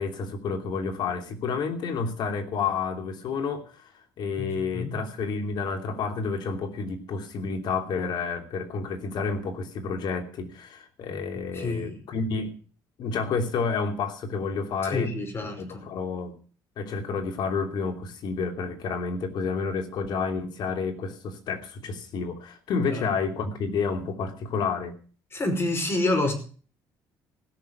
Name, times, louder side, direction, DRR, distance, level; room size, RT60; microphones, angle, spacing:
voice 1, 0.0-12.5 13.0-15.1 15.6-16.3 16.8-24.9, left 5 dB, 65° left, 6 dB, 3.0 m, -30 dB
voice 2, 4.4-5.0 11.5-12.0 14.8-15.8 22.9-23.1 25.3-26.3, left 2 dB, 30° left, 5 dB, 5.5 m, -28 dB
16.5 x 6.9 x 9.3 m, 0.41 s
supercardioid pair, 85°, 8 cm